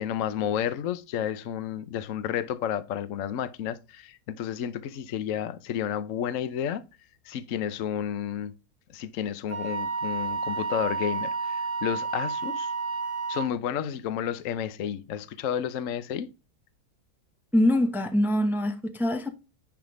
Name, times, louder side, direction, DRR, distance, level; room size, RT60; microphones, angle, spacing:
voice 1, 0.0-6.8 7.2-8.5 8.9-12.7 13.3-16.3, left 9 dB, 60° left, 1.0 m, -31 dB
Wind instrument woodwind instrument, 9.5-13.5, right 4 dB, 80° right, 2.7 m, -31 dB
voice 2, 17.5-19.3, left 1 dB, ahead, 0.8 m, -24 dB
10.5 x 3.8 x 4.9 m
omnidirectional pair, 1.7 m